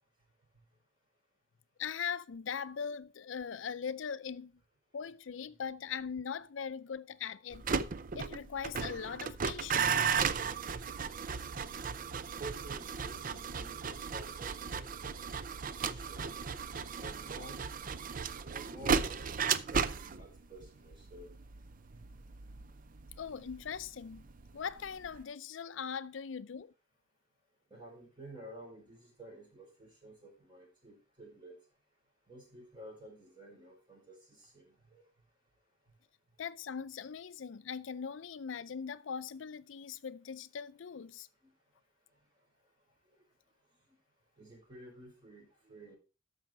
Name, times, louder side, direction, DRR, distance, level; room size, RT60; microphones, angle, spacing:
voice 1, 1.8-4.5 4.9-7.6 8.1-10.0 23.2-24.2 24.5-26.7 36.4-41.3, left 7 dB, 75° left, 0.5 m, -40 dB
sound 1, 7.5-24.5 24.8-25.2, right 6 dB, 45° right, 0.5 m, -35 dB
voice 2, 12.4-14.9 15.7-16.4 17.0-17.6 18.5-19.9 20.2-21.3 21.9-22.0 27.7-31.6 32.3-35.0 44.4-46.0, right 1 dB, 25° right, 5.8 m, -51 dB
13.0 x 5.7 x 4.6 m
head